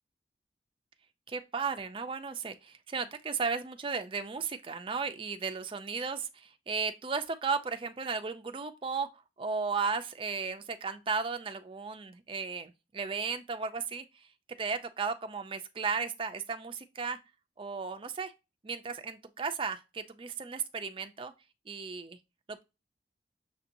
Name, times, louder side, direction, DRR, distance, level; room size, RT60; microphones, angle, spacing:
voice 1, 1.3-9.1 9.4-14.3 14.6-17.2 17.6-18.3 18.6-21.3 21.7-22.2 22.5-22.6, right 5 dB, 30° right, 0.4 m, -35 dB
6.5 x 2.8 x 2.6 m
head